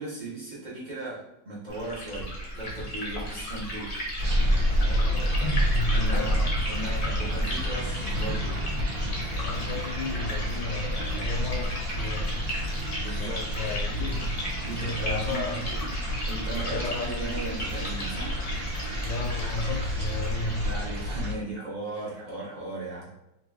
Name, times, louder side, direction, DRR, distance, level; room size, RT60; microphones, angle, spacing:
voice 1, 0.0-2.3 2.6-3.9 5.9-8.6 13.0-13.4 14.6-15.4 16.2-18.3 20.6-23.1, right 2 dB, 45° right, -7 dB, 0.6 m, -37 dB
Liquid, 1.7-20.8, equal, 50° left, 0.6 m, -35 dB
sound 1, 4.2-21.3, equal, 70° right, 0.8 m, -29 dB
voice 2, 4.8-6.6 9.4-12.5 13.2-15.8 16.7-17.4 19.0-20.7, left 3 dB, 75° left, 3 dB, 1.2 m, -34 dB
3.1 x 2.2 x 3.4 m, 0.87 s
omnidirectional pair, 2.1 m